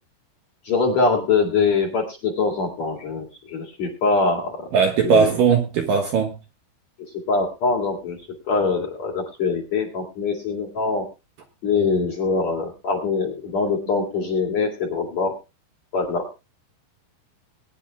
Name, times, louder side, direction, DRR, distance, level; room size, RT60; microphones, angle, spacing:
voice 1, 0.6-4.7 5.0-5.3 7.1-8.2 8.5-11.1 11.6-15.3 15.9-16.3, left 4 dB, 45° left, 2.8 m, -23 dB
voice 2, 4.7-6.4 14.0-14.1, right 6 dB, 65° right, 2.5 m, -19 dB
22.0 x 10.0 x 2.3 m
omnidirectional pair, 5.3 m